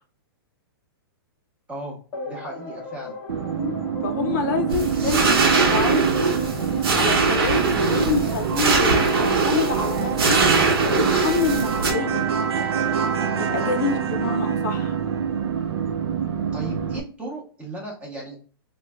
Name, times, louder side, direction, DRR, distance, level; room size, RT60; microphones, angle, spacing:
sound 1, 2.1-14.0, left 3 dB, 25° left, 0.9 m, -37 dB
voice 1, 2.2-3.2 16.5-18.4, right 2 dB, 10° right, -1 dB, 0.7 m, -36 dB
sound 2, 3.3-17.0, right 8 dB, 85° right, 0.5 m, -26 dB
voice 2, 3.6-6.1 6.9-7.6 7.9-10.4 10.8-12.2 13.4-15.0, left 4 dB, 50° left, 5 dB, 0.5 m, -27 dB
sound 3, 4.7-11.9, right 3 dB, 70° right, 0.9 m, -22 dB
3.1 x 2.2 x 3.4 m, 0.40 s
hypercardioid pair, 155°, 13 cm